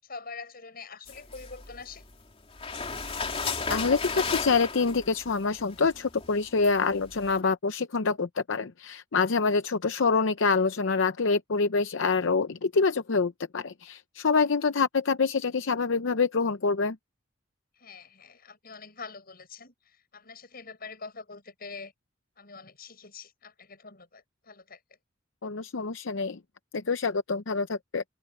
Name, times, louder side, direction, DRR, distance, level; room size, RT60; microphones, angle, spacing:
voice 1, 0.0-2.0 17.8-21.9 22.4-24.8, left 4 dB, 50° left, 7.6 m, -45 dB
sound 1, 1.1-2.1 2.5-7.4, left 4 dB, 30° left, 3.1 m, -35 dB
voice 2, 3.7-17.0 25.4-26.4 26.7-28.0, left 4 dB, 75° left, 0.7 m, -26 dB
head